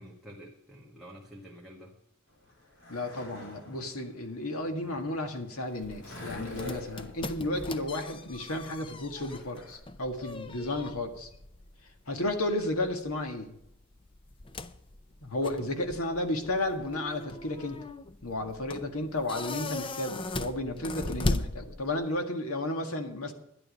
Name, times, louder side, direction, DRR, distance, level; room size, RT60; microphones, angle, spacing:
voice 1, 0.0-1.9 10.2-10.4 15.4-15.6, equal, ahead, -4 dB, 1.6 m, -48 dB
Skateboard, 2.3-9.8, left 2 dB, 60° left, 4.9 m, -46 dB
voice 2, 2.9-11.3 12.1-13.5 15.2-17.8 18.2-23.3, left 1 dB, 85° left, 5 dB, 1.9 m, -33 dB
sound 1, 5.8-22.2, left 2 dB, 25° left, 0.5 m, -39 dB
11.5 x 11.0 x 5.3 m, 0.76 s
head